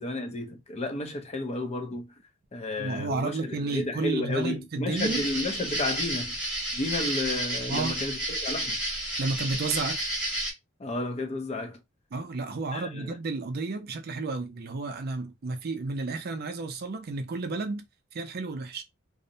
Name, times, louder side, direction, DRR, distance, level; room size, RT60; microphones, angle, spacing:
voice 1, 0.0-2.1 2.5-6.4 6.7-8.8 10.8-11.8 12.7-13.1, left 2 dB, 30° left, 0.5 m, -32 dB
voice 2, 2.8-5.3 7.7-8.0 9.2-10.1 12.1-18.8, right 3 dB, 50° right, 0.5 m, -32 dB
sound 1, 4.9-10.5, right 1 dB, 5° right, 1.2 m, -31 dB
2.6 x 2.0 x 2.7 m
head